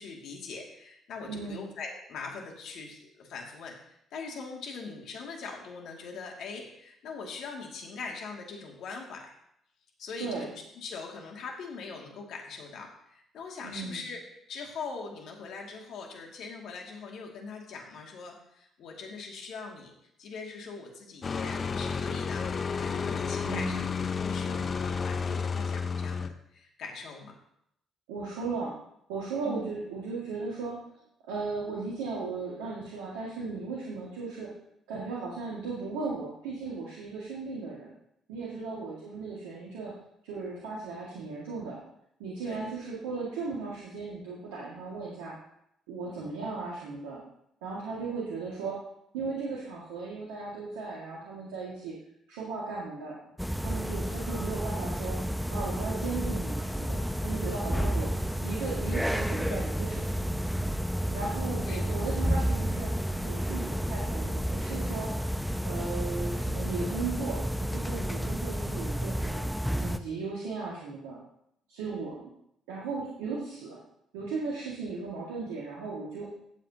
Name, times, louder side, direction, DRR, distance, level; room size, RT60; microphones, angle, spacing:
voice 1, 0.0-9.2 10.0-14.2 14.5-19.9 20.2-27.4 29.4-29.6 38.6-38.9 42.4-42.7 46.1-46.3 47.8-48.0 53.9-54.2 61.1-61.8 71.8-72.1, left 4 dB, 65° left, 0 dB, 2.4 m, -42 dB
voice 2, 1.3-1.6 10.2-10.5 13.6-14.0 23.4-23.8 28.1-28.7 29.1-30.8 31.3-34.5 34.9-37.9 38.3-39.9 40.2-41.8 42.2-45.3 45.9-47.2 47.6-48.8 49.1-51.9 52.3-53.2 53.6-55.2 55.5-58.1 58.4-60.1 61.1-62.9 63.2-65.1 65.6-69.4 69.8-71.2 71.7-72.3 72.7-73.8 74.1-76.3, right 4 dB, 80° right, -5 dB, 2.1 m, -36 dB
sound 1, 21.2-26.3, left 5 dB, 45° left, 0.7 m, -31 dB
sound 2, 53.4-70.0, equal, ahead, 0.8 m, -31 dB
15.0 x 7.8 x 2.9 m, 0.75 s
hypercardioid pair, 50°, 0 cm